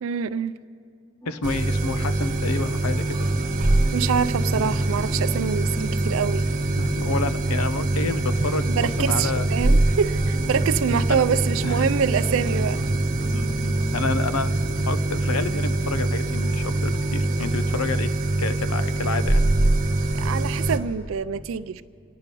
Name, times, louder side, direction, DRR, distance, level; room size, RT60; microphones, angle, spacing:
voice 1, 0.0-0.5 3.9-6.5 8.7-12.8 20.1-21.8, right 6 dB, 65° right, 13 dB, 0.4 m, -25 dB
sound 1, 1.2-18.0, equal, 20° left, 1.2 m, -41 dB
voice 2, 1.3-3.2 6.8-9.5 11.1-11.2 11.6-11.8 13.3-14.5 14.9-18.1 18.4-19.4, left 4 dB, 90° left, 13 dB, 0.7 m, -29 dB
sound 2, 1.4-20.8, right 2 dB, 35° right, 1.0 m, -23 dB
27.0 x 9.8 x 5.3 m, 2.2 s
head